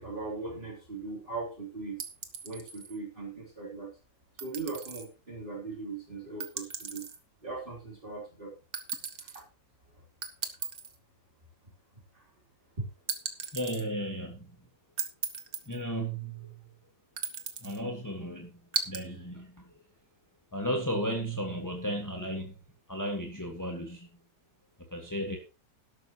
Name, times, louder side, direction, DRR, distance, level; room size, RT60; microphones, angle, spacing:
voice 1, 0.0-2.1 2.4-3.9 4.4-7.1 7.4-8.5 9.2-9.4 9.9-10.0 12.1-12.3 12.8-12.9, right 3 dB, 35° right, -3 dB, 3.5 m, -39 dB
sound 1, 2.0-3.0 4.4-5.1 6.4-7.2 8.7-9.4 10.2-11.0 13.1-13.8 15.0-15.8 17.2-17.8 18.7-19.0, right 6 dB, 70° right, 1.8 m, -36 dB
voice 2, 13.5-14.6 15.6-16.6 17.6-18.5 18.8-19.8 20.5-22.6 22.9-24.1 24.8-25.4, equal, 15° left, 1 dB, 1.7 m, -34 dB
12.5 x 12.0 x 3.0 m, 0.32 s
omnidirectional pair, 1.6 m